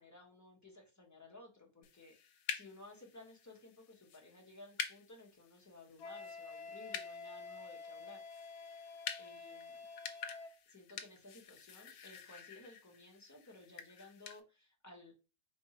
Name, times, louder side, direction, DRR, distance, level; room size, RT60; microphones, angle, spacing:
voice 1, 0.0-2.1 2.5-8.2 9.2-9.9 10.7-15.1, left 2 dB, 10° left, 0 dB, 1.0 m, -57 dB
sound 1, 1.8-14.4, left 7 dB, 85° left, 1.2 m, -48 dB
Wind instrument woodwind instrument, 6.0-10.5, left 4 dB, 45° left, 0.5 m, -49 dB
4.4 x 2.7 x 4.2 m, 0.30 s
omnidirectional pair, 1.6 m